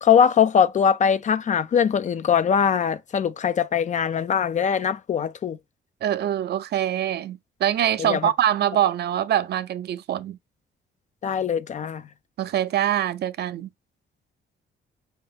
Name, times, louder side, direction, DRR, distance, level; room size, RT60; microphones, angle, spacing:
voice 1, 0.0-5.6 8.0-8.3 11.2-12.0, left 7 dB, 40° left, 0.4 m, -21 dB
voice 2, 6.0-10.4 12.4-13.7, right 11 dB, 55° right, 0.4 m, -24 dB
4.4 x 2.8 x 3.2 m
cardioid pair, 90°, 20 cm